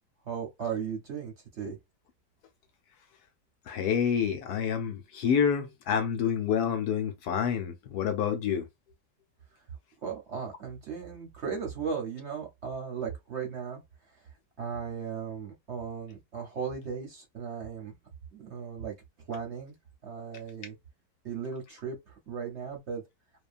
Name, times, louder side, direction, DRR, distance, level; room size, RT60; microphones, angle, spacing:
voice 1, 0.3-1.8 10.0-13.8 14.6-17.9 18.3-18.9 19.3-19.7 20.0-20.8 21.2-23.0, right 6 dB, 50° right, 0.9 m, -36 dB
voice 2, 3.7-8.7, left 7 dB, 70° left, 1.1 m, -28 dB
2.8 x 2.2 x 2.4 m
omnidirectional pair, 1.9 m